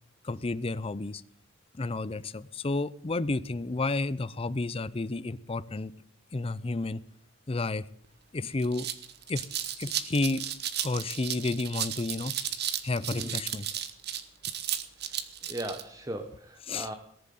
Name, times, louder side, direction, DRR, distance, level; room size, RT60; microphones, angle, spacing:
voice 1, 0.2-1.2 1.8-5.9 6.3-7.0 7.5-7.8 8.3-8.9 9.3-9.5 9.8-10.4 10.8-12.3 12.8-13.7 16.7-16.9, left 2 dB, 30° left, 16 dB, 0.5 m, -31 dB
sound 1, 8.0-8.1 8.5-15.8, right 10 dB, 50° right, 1.3 m, -34 dB
voice 2, 15.5-17.0, right 1 dB, 15° right, 7 dB, 1.0 m, -38 dB
18.5 x 7.3 x 9.3 m, 0.64 s
head